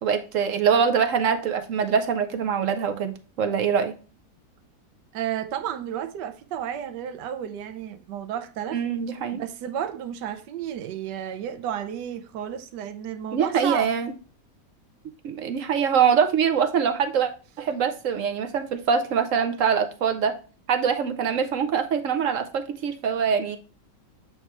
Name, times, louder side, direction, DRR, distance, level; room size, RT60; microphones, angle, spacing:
voice 1, 0.0-4.0 8.7-9.4 13.3-14.1 15.2-17.3 17.6-20.4 20.7-23.6, right 7 dB, 60° right, 0.9 m, -23 dB
voice 2, 5.1-8.8 9.3-13.9, right 10 dB, 85° right, 1.3 m, -32 dB
7.9 x 3.2 x 4.3 m
omnidirectional pair, 1.8 m